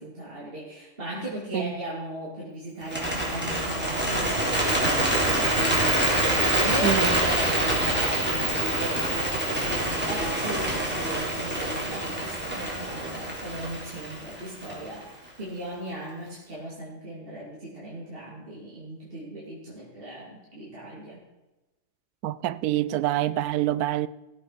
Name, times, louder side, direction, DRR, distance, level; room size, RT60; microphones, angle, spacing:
voice 1, 0.0-21.3, right 1 dB, 35° right, 2.8 m, -37 dB
Bird, 2.8-15.0, right 1 dB, 5° right, 3.2 m, -26 dB
voice 2, 6.8-7.2 22.2-24.1, right 13 dB, 70° right, 1.0 m, -26 dB
17.0 x 7.7 x 4.8 m
omnidirectional pair, 1.8 m